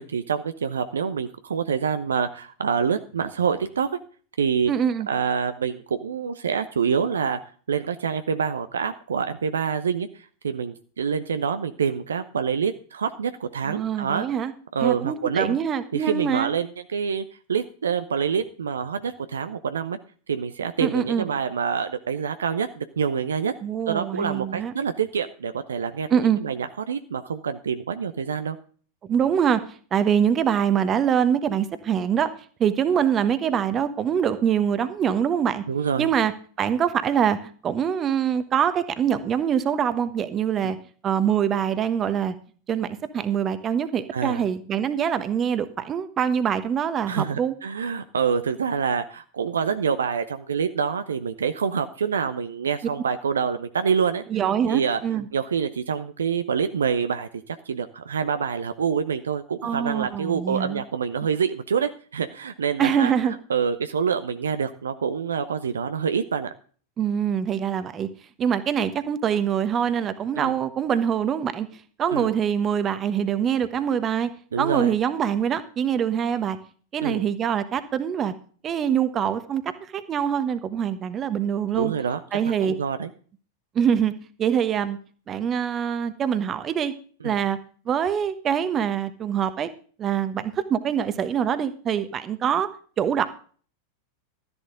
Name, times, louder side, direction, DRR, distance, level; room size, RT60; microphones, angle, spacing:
voice 1, 0.0-3.9 4.4-4.7 5.1-7.4 7.7-10.1 10.4-14.3 14.7-15.6 15.9-20.0 20.3-23.5 23.9-28.6 35.7-36.1 40.6-40.7 44.1-44.4 47.1-54.2 54.7-55.0 55.3-63.1 63.5-66.5 70.4-70.5 72.1-72.3 74.5-74.9 77.0-77.2 81.7-83.1 87.2-87.4, right 6 dB, 70° right, 10 dB, 0.8 m, -26 dB
voice 2, 4.7-5.1 13.7-14.5 14.8-16.5 20.8-21.3 23.6-24.7 26.1-26.4 29.0-29.6 29.9-32.3 32.6-35.6 36.0-36.3 36.6-40.8 41.0-42.3 42.7-47.5 54.3-55.3 59.6-60.8 62.8-63.3 67.0-68.1 68.4-71.7 72.0-74.3 74.6-76.6 76.9-78.3 78.6-79.6 79.9-81.9 82.3-82.7 83.7-84.1 84.4-85.0 85.3-86.9 87.2-87.6 87.9-89.7 90.0-92.7 93.0-93.3, right 8 dB, 25° right, 12 dB, 1.2 m, -24 dB
13.0 x 11.0 x 3.8 m, 0.43 s
figure-of-eight pair, 90°, 0 cm